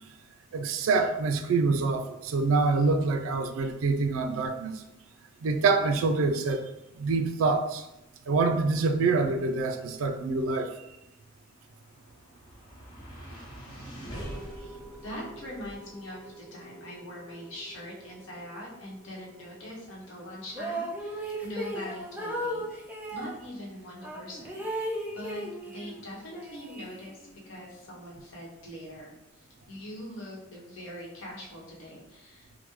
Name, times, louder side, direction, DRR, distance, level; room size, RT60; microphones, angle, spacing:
voice 1, 0.5-4.7 5.4-6.7 6.9-7.8 8.3-10.7, right 4 dB, 90° right, 6 dB, 0.4 m, -26 dB
sound 1, 11.5-23.9, right 1 dB, 25° left, 0.9 m, -47 dB
voice 2, 15.0-22.6 23.1-24.6 25.1-32.6, left 1 dB, 70° left, -4 dB, 0.9 m, -42 dB
sound 2, 20.5-23.4 24.0-26.0 26.3-27.4, right 1 dB, 10° right, 0.4 m, -36 dB
3.4 x 2.1 x 3.0 m, 0.91 s
head